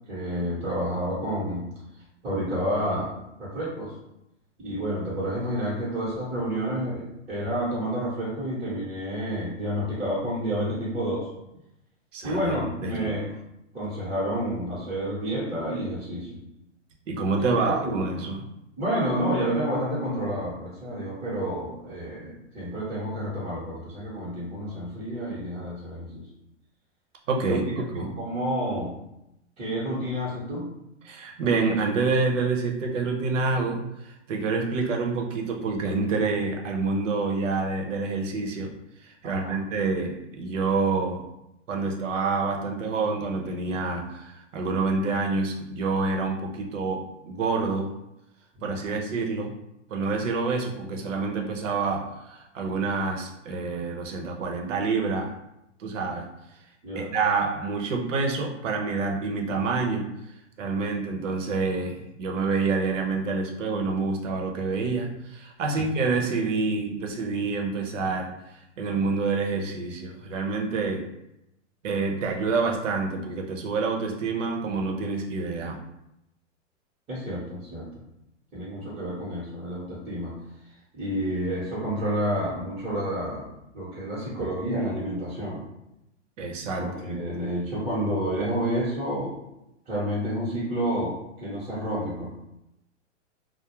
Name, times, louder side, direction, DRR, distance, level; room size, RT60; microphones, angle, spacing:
voice 1, 0.1-1.7 2.2-3.9 4.6-11.3 12.2-13.3 13.7-16.4 17.4-18.0 18.8-26.3 27.5-29.0 29.6-30.7 39.2-39.6 48.6-49.0 56.8-57.1 77.1-77.9 78.5-80.3 80.9-83.5 83.7-85.6 86.8-89.3 89.9-92.3, equal, 20° right, -10 dB, 0.8 m, -29 dB
voice 2, 12.1-13.1 17.1-18.4 27.3-27.6 27.9-28.1 31.0-38.7 39.0-41.3 41.7-47.9 48.6-49.5 49.9-55.3 55.8-56.3 56.9-60.1 60.6-68.3 68.8-71.1 71.8-75.8 86.4-87.2, right 4 dB, 80° right, 1 dB, 0.7 m, -27 dB
2.3 x 2.0 x 3.0 m, 0.85 s
hypercardioid pair, 130°, 37 cm